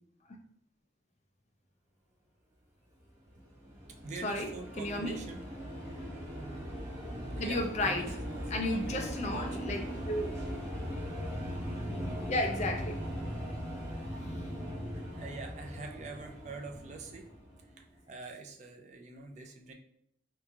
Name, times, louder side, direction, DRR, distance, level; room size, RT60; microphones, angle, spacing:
sound 1, 3.3-17.8, equal, 15° right, 0.8 m, -39 dB
voice 1, 4.0-5.5 7.2-9.9 14.9-17.3 17.7-19.7, right 3 dB, 40° right, 3 dB, 0.4 m, -45 dB
voice 2, 4.8-5.2 7.4-8.1 8.5-10.4 12.3-13.0, left 1 dB, 35° left, 4 dB, 0.4 m, -33 dB
3.5 x 2.9 x 2.3 m, 0.71 s
head